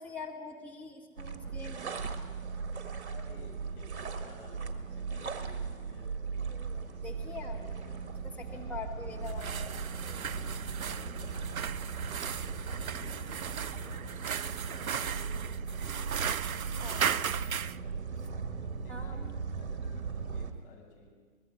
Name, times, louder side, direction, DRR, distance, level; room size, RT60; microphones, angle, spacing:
voice 1, 0.0-1.9 7.0-7.6 8.4-9.7 16.8-17.2 18.9-19.2, left 4 dB, 5° left, -3 dB, 2.0 m, -43 dB
sound 1, 1.2-20.5, right 5 dB, 55° right, 1.9 m, -38 dB
voice 2, 3.0-6.2 7.0-8.0 8.5-9.3 10.7-15.5 15.8-17.6 18.1-21.1, left 4 dB, 40° left, -1 dB, 6.4 m, -54 dB
sound 2, 6.3-14.0, left 1 dB, 25° left, 6.5 m, -52 dB
sound 3, 9.2-17.8, right 8 dB, 85° right, 0.5 m, -36 dB
23.0 x 20.5 x 6.3 m, 1.6 s
figure-of-eight pair, 125°, 41 cm